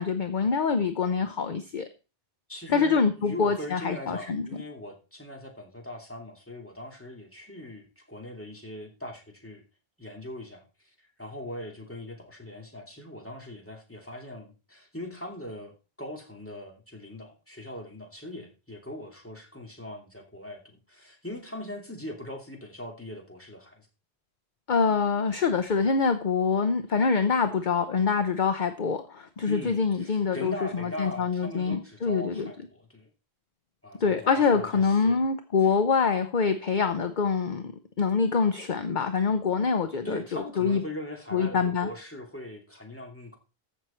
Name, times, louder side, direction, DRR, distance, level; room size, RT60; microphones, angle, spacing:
voice 1, 0.0-1.9 2.7-4.5 24.7-32.5 34.0-37.6 38.0-40.8 41.3-41.9, left 5 dB, 50° left, 9 dB, 0.9 m, -25 dB
voice 2, 2.5-9.6 10.0-10.6 11.2-23.9 29.5-33.1 33.8-35.2 35.6-35.7 40.0-43.4, left 1 dB, 10° left, 1 dB, 2.7 m, -40 dB
14.5 x 6.6 x 4.4 m, 0.33 s
omnidirectional pair, 1.1 m